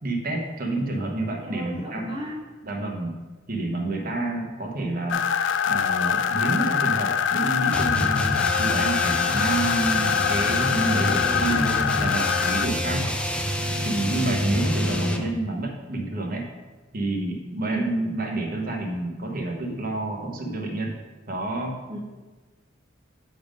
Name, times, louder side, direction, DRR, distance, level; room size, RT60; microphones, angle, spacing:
voice 1, 0.0-2.2 2.6-3.1 3.5-5.2 5.7-8.1 8.6-13.0 13.8-16.5 16.9-21.0 21.3-21.8, right 2 dB, 50° right, 1 dB, 1.1 m, -29 dB
voice 2, 1.4-2.4 4.1-4.4 10.9-11.6 14.1-14.4 17.6-17.9 21.9-22.0, equal, 25° right, -3 dB, 0.8 m, -34 dB
sound 1, 5.1-12.7, left 7 dB, 70° left, 0.3 m, -24 dB
sound 2, 7.7-15.3, left 1 dB, 5° left, 0.5 m, -27 dB
8.7 x 3.7 x 5.1 m, 1.3 s
head